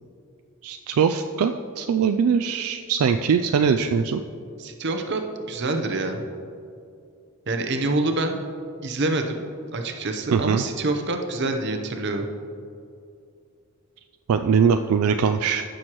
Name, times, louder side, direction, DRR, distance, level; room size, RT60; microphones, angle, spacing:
voice 1, 0.6-4.2 10.3-10.6 14.3-15.6, right 6 dB, 75° right, 7 dB, 0.3 m, -21 dB
voice 2, 4.6-6.2 7.5-8.4 8.8-9.4 9.7-12.3, right 2 dB, 50° right, 5 dB, 0.8 m, -26 dB
15.5 x 6.3 x 3.0 m, 2.5 s
head